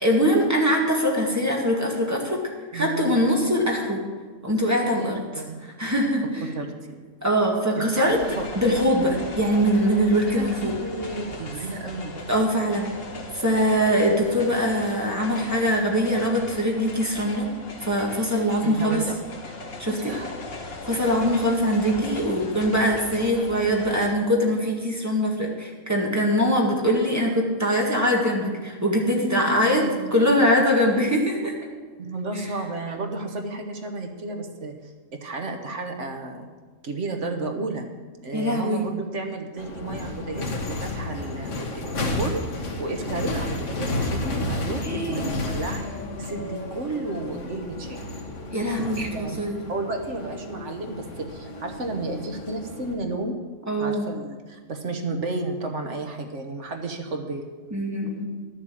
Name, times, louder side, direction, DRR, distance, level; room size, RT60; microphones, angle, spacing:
voice 1, 0.0-2.4 2.7-4.0 4.4-6.5 7.2-8.2 8.6-10.7 12.3-12.9 13.3-17.5 17.8-19.0 19.8-20.2 20.9-29.8 30.1-31.5 38.3-38.8 44.8-45.3 48.5-49.6 53.7-54.1 57.7-58.3, equal, 10° right, -2 dB, 1.9 m, -22 dB
voice 2, 4.9-5.6 6.5-7.0 7.8-8.5 10.3-12.2 18.6-19.2 19.9-20.3 29.2-30.1 32.0-36.5 36.8-37.9 38.2-42.4 42.8-45.9 46.2-48.0 48.9-49.4 49.7-53.4 53.8-57.5, right 2 dB, 60° right, 4 dB, 1.5 m, -32 dB
sound 1, 8.0-24.1, left 2 dB, 45° left, 1.5 m, -38 dB
sound 2, 39.6-52.9, left 2 dB, 60° left, 1.7 m, -32 dB
11.5 x 7.4 x 7.4 m, 1.4 s
omnidirectional pair, 1.4 m